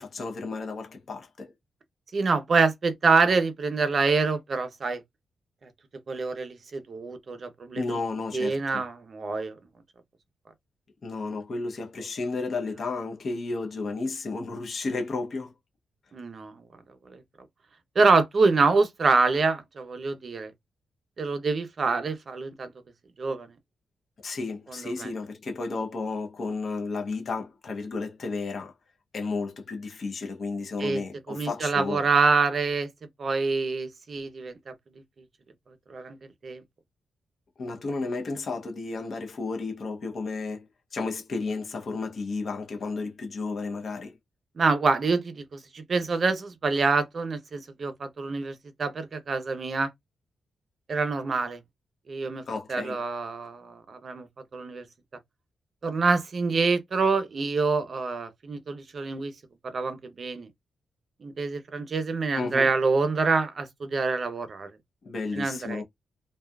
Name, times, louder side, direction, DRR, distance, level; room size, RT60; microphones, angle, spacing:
voice 1, 0.0-1.5 7.7-8.8 11.0-15.5 24.2-28.7 29.1-32.1 37.6-44.2 52.4-53.0 62.3-62.7 65.0-65.8, left 3 dB, 50° left, 0.7 m, -32 dB
voice 2, 2.1-5.0 6.1-8.0 8.3-9.6 16.1-16.5 17.1-17.2 18.0-20.5 21.2-22.7 23.2-23.5 24.7-25.1 30.8-31.0 31.3-32.9 33.2-34.6 35.9-36.2 36.4-36.6 44.6-49.9 50.9-51.6 52.1-52.4 52.7-54.3 54.5-54.8 55.8-59.3 59.6-60.5 61.2-64.7 65.3-65.8, right 4 dB, 45° right, 0.6 m, -26 dB
2.6 x 2.3 x 2.3 m
cardioid pair, 115°, 0 cm